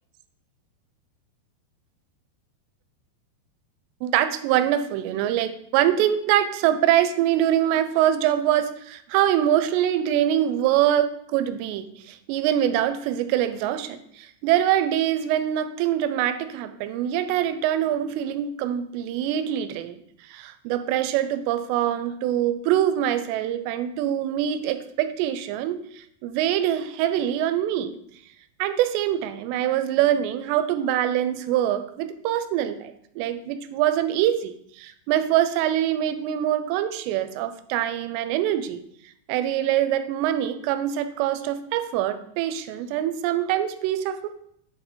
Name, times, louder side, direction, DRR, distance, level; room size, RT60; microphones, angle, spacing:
voice 1, 4.0-27.9 28.6-38.8 39.3-44.3, right 11 dB, 85° right, 10 dB, 2.7 m, -24 dB
8.4 x 4.3 x 4.1 m, 0.71 s
omnidirectional pair, 5.0 m